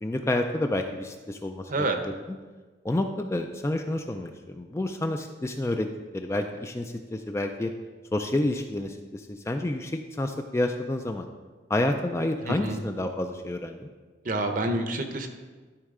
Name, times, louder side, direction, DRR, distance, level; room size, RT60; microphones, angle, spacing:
voice 1, 0.0-2.4 2.8-5.9 6.1-7.7 8.1-11.3 11.7-13.9, left 1 dB, 15° left, 5 dB, 0.3 m, -29 dB
voice 2, 12.5-12.8 14.2-15.3, right 2 dB, 45° right, 5 dB, 0.7 m, -27 dB
12.5 x 4.4 x 3.7 m, 1.4 s
head